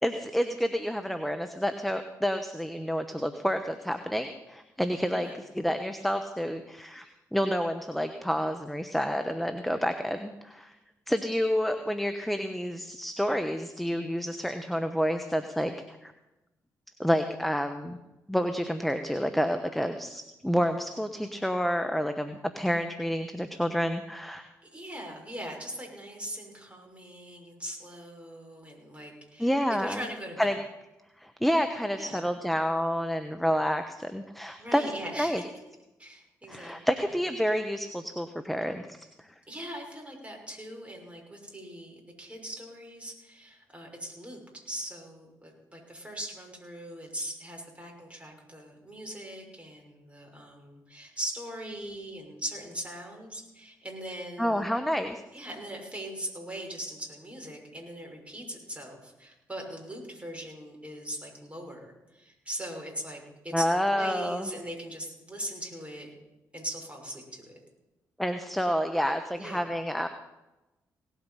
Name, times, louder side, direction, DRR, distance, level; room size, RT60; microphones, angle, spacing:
voice 1, 0.0-10.7 11.1-15.7 16.0-16.1 17.0-18.0 18.3-24.5 29.4-30.1 30.4-30.6 31.2-34.8 35.2-35.4 36.5-39.0 54.4-55.2 63.5-64.5 68.2-70.1, equal, ahead, 7 dB, 1.2 m, -29 dB
voice 2, 19.8-20.1 24.6-30.5 32.0-32.2 34.6-35.5 36.0-36.8 39.5-44.4 44.7-54.6 55.3-63.6 63.9-66.1 66.5-67.6 69.4-69.7, right 1 dB, 15° right, 0 dB, 6.0 m, -40 dB
18.0 x 8.3 x 5.7 m, 0.99 s
hypercardioid pair, 40°, 9 cm